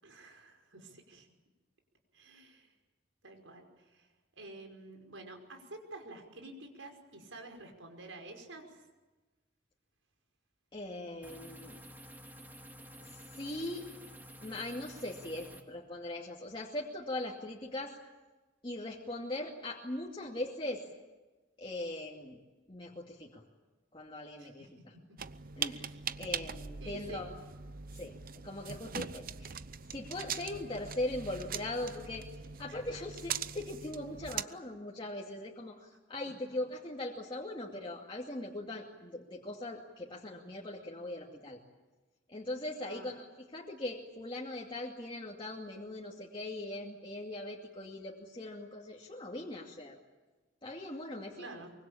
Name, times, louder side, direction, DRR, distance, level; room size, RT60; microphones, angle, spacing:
voice 1, 0.0-1.3 2.1-2.7 3.2-4.1 4.4-8.8 24.4-24.7 25.8-26.0 26.8-27.2 32.7-32.8 36.4-36.5 42.8-43.1 51.4-51.7, right 2 dB, 85° right, 4 dB, 5.5 m, -49 dB
voice 2, 10.7-11.8 13.0-13.8 14.4-18.0 18.6-20.8 21.6-22.4 22.7-23.4 23.9-24.9 25.6-25.9 26.2-27.3 27.9-28.1 28.4-29.6 29.9-32.2 32.6-41.6 42.3-50.0 50.6-51.5, left 1 dB, 25° left, -3 dB, 2.5 m, -40 dB
sound 1, 11.2-15.6, equal, 10° right, 2.2 m, -51 dB
sound 2, 25.2-34.4, right 7 dB, 50° right, 0.7 m, -41 dB
24.5 x 24.0 x 8.8 m, 1.2 s
head